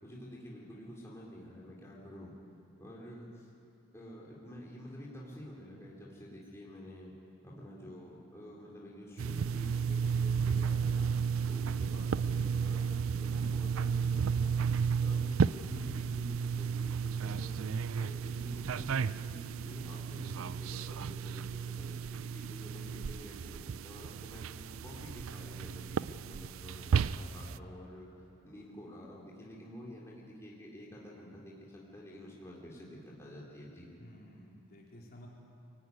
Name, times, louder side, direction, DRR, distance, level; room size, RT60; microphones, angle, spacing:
voice 1, 0.0-2.3 2.8-3.5 3.9-7.1 7.4-11.1 11.5-14.6 15.0-17.6 18.0-24.4 24.8-28.1 28.4-33.9, equal, 15° left, -4 dB, 3.3 m, -49 dB
sound 1, 9.2-27.6, right 6 dB, 75° right, 0.4 m, -33 dB
voice 2, 22.7-23.2 27.1-27.8 34.0-35.3, equal, 45° left, -2 dB, 3.8 m, -54 dB
24.0 x 16.0 x 9.6 m, 2.7 s
head